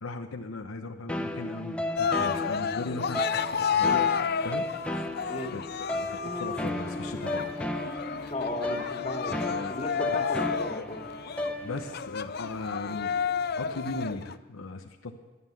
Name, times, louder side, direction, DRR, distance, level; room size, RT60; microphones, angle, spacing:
voice 1, 0.0-4.1 4.4-4.7 5.5-5.6 5.9-7.5 9.3-9.8 10.1-10.2 11.6-13.2 13.6-15.2, left 2 dB, 75° left, 5 dB, 0.9 m, -37 dB
sound 1, 1.1-12.1, left 1 dB, 5° left, 0.8 m, -34 dB
Cheering, 2.0-14.4, left 7 dB, 45° left, 0.5 m, -31 dB
voice 2, 8.3-11.0, left 2 dB, 30° left, 2 dB, 2.2 m, -35 dB
15.0 x 11.0 x 8.0 m, 1.2 s
head